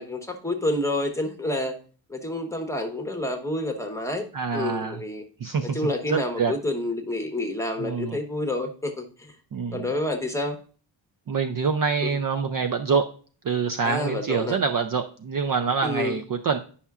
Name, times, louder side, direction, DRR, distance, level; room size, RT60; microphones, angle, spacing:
voice 1, 0.0-1.7 2.1-4.2 4.5-5.2 5.6-9.3 9.7-10.6 12.0-12.2 13.8-14.6 15.8-16.2, left 1 dB, 5° left, 3 dB, 1.0 m, -29 dB
voice 2, 4.3-5.0 5.4-5.8 6.1-6.5 7.8-8.2 9.5-9.9 11.3-13.0 13.4-16.6, right 5 dB, 45° right, 7 dB, 0.5 m, -25 dB
9.7 x 5.6 x 2.4 m, 0.40 s
wide cardioid pair, 110°, 48 cm